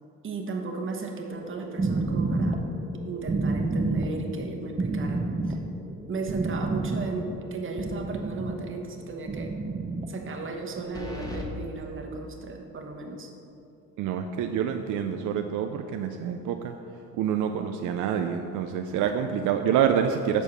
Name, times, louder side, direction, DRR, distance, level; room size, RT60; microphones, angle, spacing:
voice 1, 0.2-2.6 3.0-5.6 6.1-9.5 10.1-13.3, right 3 dB, 40° right, 2 dB, 1.0 m, -35 dB
sound 1, 1.3-8.5 9.2-10.0 10.7-10.8, right 3 dB, 20° right, 0.6 m, -29 dB
sound 2, 7.8-8.3 8.6-8.7 10.9-11.5, left 2 dB, 10° left, 1.1 m, -37 dB
voice 2, 14.0-16.7 17.1-20.4, right 8 dB, 80° right, 6 dB, 0.5 m, -27 dB
7.0 x 4.6 x 5.5 m, 2.7 s
cardioid pair, 90°, 30 cm